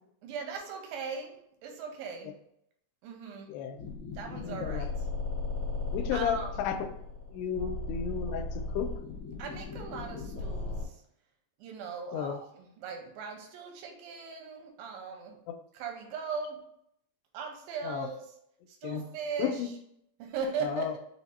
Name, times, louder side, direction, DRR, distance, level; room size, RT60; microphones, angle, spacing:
voice 1, 0.2-1.3 1.6-2.3 3.0-3.5 4.2-4.9 6.1-6.5 7.6-7.7 9.4-10.7 11.6-15.4 15.7-16.6 17.3-18.2 18.8-19.6 20.2-21.0, right 5 dB, 80° right, 2 dB, 2.1 m, -38 dB
sound 1, 3.8-10.8, left 3 dB, 55° left, 1.3 m, -36 dB
voice 2, 4.4-4.9 5.9-6.9 7.3-8.9 12.1-12.4 15.5-15.6 17.8-18.1 18.8-19.1 19.4-19.7 20.6-20.9, left 8 dB, 85° left, 7 dB, 2.6 m, -33 dB
6.1 x 2.1 x 4.1 m, 0.74 s
omnidirectional pair, 4.6 m